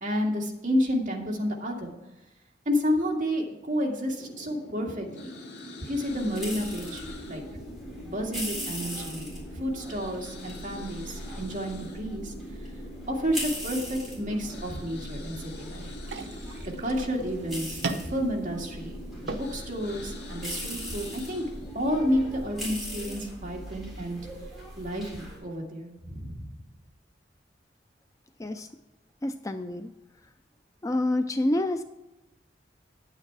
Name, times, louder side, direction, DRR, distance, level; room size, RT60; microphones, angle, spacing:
voice 1, 0.0-2.0 2.7-5.3 5.8-7.4 8.0-12.3 13.1-15.9 16.8-21.5 21.7-24.2 24.8-26.6, equal, 45° right, -1 dB, 2.1 m, -30 dB
sound 1, 4.2-22.5, left 1 dB, 60° left, 2.4 m, -44 dB
sound 2, 6.1-25.4, equal, ahead, 3.6 m, -40 dB
sound 3, 16.0-24.0, right 3 dB, 70° right, 0.8 m, -41 dB
voice 2, 29.2-29.9 30.8-31.8, left 1 dB, 20° left, 8 dB, 0.4 m, -27 dB
9.4 x 9.0 x 4.7 m, 0.99 s
head